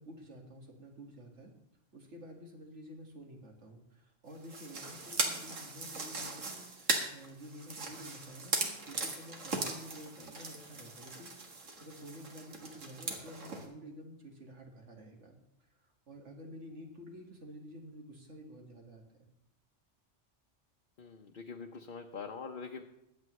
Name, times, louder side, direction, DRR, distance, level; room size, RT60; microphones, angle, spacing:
voice 1, 0.0-1.5 1.9-11.5 11.8-15.3 16.1-19.3, equal, 70° right, 1 dB, 2.2 m, -50 dB
sound 1, 4.4-13.7, right 3 dB, 85° right, 2.0 m, -38 dB
voice 2, 21.0-22.8, left 5 dB, 50° left, 2 dB, 0.9 m, -44 dB
21.5 x 8.5 x 3.2 m, 0.87 s
omnidirectional pair, 1.3 m